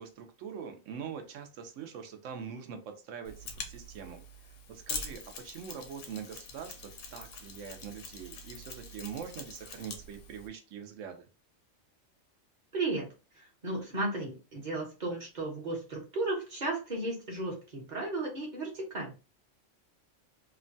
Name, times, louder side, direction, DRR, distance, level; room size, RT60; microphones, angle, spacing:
voice 1, 0.0-4.2 4.7-11.2, right 7 dB, 80° right, 6 dB, 1.0 m, -43 dB
Mechanisms, 3.2-10.5, left 4 dB, 80° left, 1.0 m, -44 dB
voice 2, 12.7-13.1 13.3-19.1, right 2 dB, 40° right, 0 dB, 1.0 m, -34 dB
2.9 x 2.2 x 2.6 m, 0.31 s
omnidirectional pair, 1.3 m